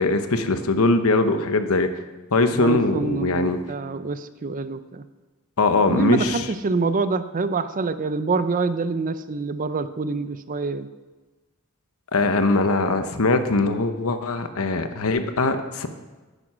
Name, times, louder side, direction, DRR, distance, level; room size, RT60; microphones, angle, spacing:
voice 1, 0.0-1.9 2.3-3.6 5.6-6.5 12.1-15.9, left 3 dB, 70° left, 9 dB, 0.9 m, -21 dB
voice 2, 2.5-5.0 5.9-10.9, right 4 dB, 35° right, 12 dB, 0.5 m, -26 dB
9.9 x 9.4 x 6.1 m, 1.2 s
head